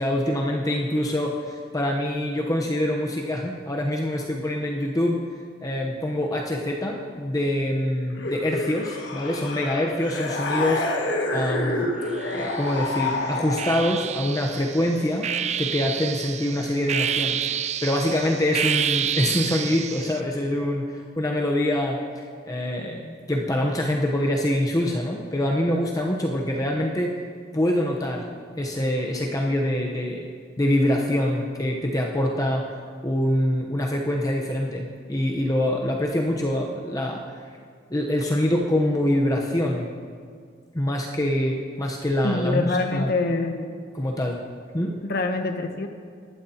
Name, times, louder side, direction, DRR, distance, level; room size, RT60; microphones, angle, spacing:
voice 1, 0.0-5.2 5.6-10.8 11.3-11.9 12.3-15.3 15.6-27.2 27.5-28.3 28.6-30.3 30.6-32.6 33.0-37.2 37.9-39.9 40.7-43.1 43.9-44.4 44.7-45.0, left 1 dB, 20° left, -1 dB, 0.9 m, -25 dB
sound 1, 8.2-14.0, left 2 dB, 75° left, 1.6 m, -28 dB
sound 2, 12.2-12.9 13.6-20.2, right 9 dB, 35° right, 0.4 m, -29 dB
voice 2, 42.2-43.7 45.0-45.9, left 3 dB, 60° left, 5 dB, 0.9 m, -25 dB
24.5 x 11.5 x 2.9 m, 2.1 s
head